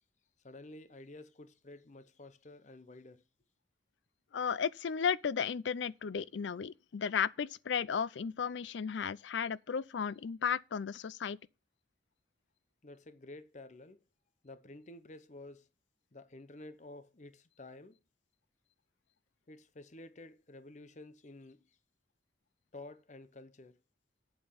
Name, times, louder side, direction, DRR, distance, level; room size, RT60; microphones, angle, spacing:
voice 1, 0.4-3.2 12.8-14.0 14.4-15.7 16.1-18.0 19.5-21.8 22.7-23.8, left 2 dB, 40° left, 0.7 m, -51 dB
voice 2, 4.3-11.4, left 7 dB, 80° left, 0.4 m, -34 dB
8.6 x 7.2 x 5.6 m
head